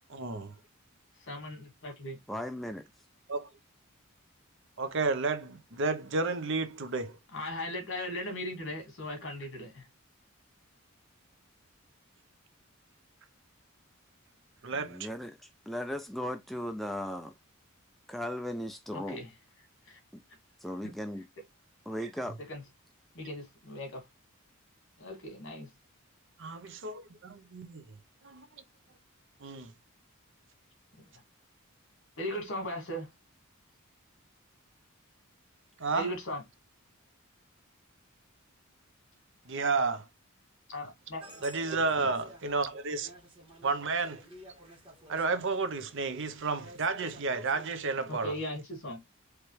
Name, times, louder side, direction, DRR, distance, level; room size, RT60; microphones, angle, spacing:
voice 1, 0.1-0.5 3.3-3.5 4.8-7.2 14.6-15.1 26.4-27.8 28.2-28.4 29.4-29.7 35.8-36.1 39.5-40.0 41.4-43.1 43.6-44.2 45.1-48.3, right 3 dB, 60° right, 0.8 m, -31 dB
voice 2, 1.2-2.2 7.3-9.9 18.9-19.3 19.8-20.0 20.8-20.9 22.4-22.6 23.1-24.1 25.0-25.7 31.0-31.2 32.2-33.1 35.9-36.4 40.7-41.2 48.1-49.0, left 1 dB, 60° left, 2.4 m, -38 dB
voice 3, 2.3-2.9 14.7-17.3 18.1-19.2 20.1-20.2 20.6-21.2 21.9-22.4, equal, ahead, 0.4 m, -37 dB
sound 1, 41.2-47.7, equal, 25° right, 2.0 m, -53 dB
4.6 x 3.2 x 3.2 m
head